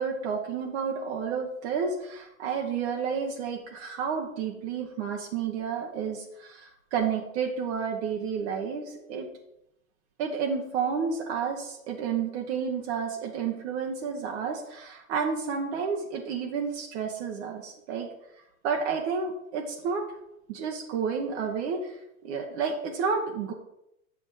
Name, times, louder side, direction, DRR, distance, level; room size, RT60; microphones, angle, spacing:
voice 1, 0.0-9.3 10.2-18.1 18.6-20.0 20.5-22.0 22.2-23.5, right 6 dB, 50° right, 1 dB, 1.3 m, -31 dB
8.2 x 6.0 x 4.9 m, 0.84 s
hypercardioid pair, 95°, 41 cm